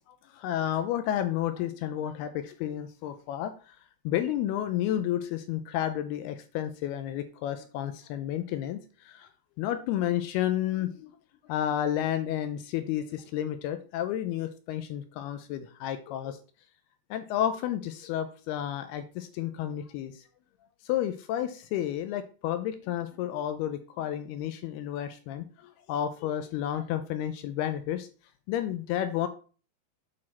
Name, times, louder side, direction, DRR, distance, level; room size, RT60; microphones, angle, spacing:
voice 1, 0.1-3.8 4.1-9.3 9.6-11.1 11.5-16.4 17.1-20.2 20.9-28.1 28.5-29.3, left 11 dB, 80° left, 9 dB, 2.4 m, -31 dB
8.6 x 4.3 x 4.2 m, 0.38 s
omnidirectional pair, 4.9 m